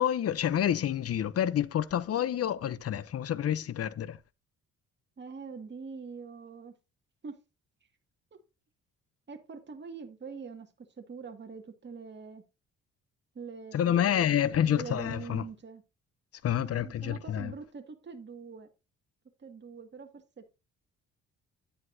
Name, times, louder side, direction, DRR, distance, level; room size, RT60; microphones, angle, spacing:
voice 1, 0.0-4.2 13.7-15.4 16.4-17.5, left 10 dB, 50° left, 0.7 m, -28 dB
voice 2, 5.2-6.7 7.2-7.4 8.3-8.4 9.3-10.7 11.0-12.4 13.3-15.8 16.5-18.7 19.4-20.5, right 5 dB, 35° right, 2.1 m, -44 dB
10.0 x 9.9 x 2.7 m
cardioid pair, 90°, 30 cm